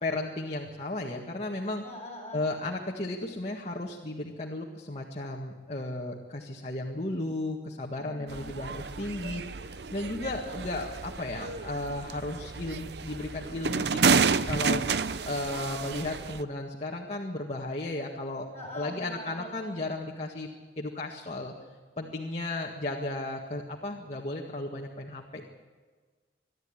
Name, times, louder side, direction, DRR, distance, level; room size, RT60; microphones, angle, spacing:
voice 1, 0.0-1.8 2.3-14.8 15.2-18.4 18.7-20.5 20.8-21.5 22.0-25.4, left 2 dB, 40° left, -1 dB, 1.8 m, -34 dB
voice 2, 1.8-2.4 8.0-8.5 18.5-19.5, left 2 dB, 15° left, -5 dB, 7.2 m, -42 dB
sound 1, 8.3-16.4, right 5 dB, 65° right, 0.7 m, -30 dB
24.0 x 12.5 x 9.9 m, 1.4 s
head